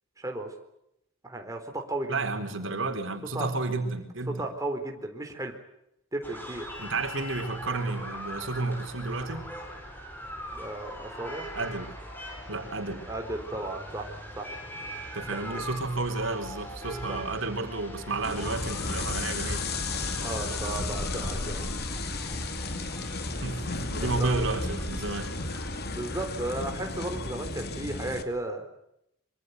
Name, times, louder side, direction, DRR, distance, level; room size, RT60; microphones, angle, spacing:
voice 1, 0.2-0.5 1.2-2.2 3.3-3.5 4.3-5.6 6.1-6.6 10.5-11.5 13.1-14.1 14.4-14.5 15.3-15.6 17.1-17.2 20.2-21.7 24.0-24.4 25.9-28.6, right 2 dB, 15° right, 3 dB, 3.9 m, -34 dB
voice 2, 2.1-4.4 6.8-9.5 11.6-11.9 12.5-13.0 15.1-19.7 23.4-25.3, right 3 dB, 70° right, 6 dB, 4.1 m, -31 dB
sound 1, 6.2-25.8, equal, 10° left, 7.9 m, -42 dB
sound 2, 18.2-28.2, left 2 dB, 55° left, 2.6 m, -33 dB
26.0 x 25.0 x 8.1 m, 0.80 s
head